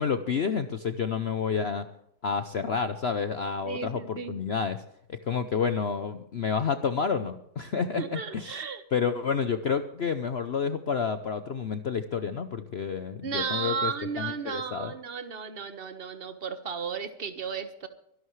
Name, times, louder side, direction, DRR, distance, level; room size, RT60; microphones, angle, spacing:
voice 1, 0.0-1.8 2.2-4.8 5.1-8.6 8.9-14.9, left 6 dB, 50° left, 9 dB, 0.8 m, -29 dB
voice 2, 3.6-4.4 8.0-8.8 13.2-17.9, right 6 dB, 35° right, 9 dB, 1.5 m, -34 dB
24.0 x 11.5 x 3.2 m, 0.74 s
omnidirectional pair, 1.8 m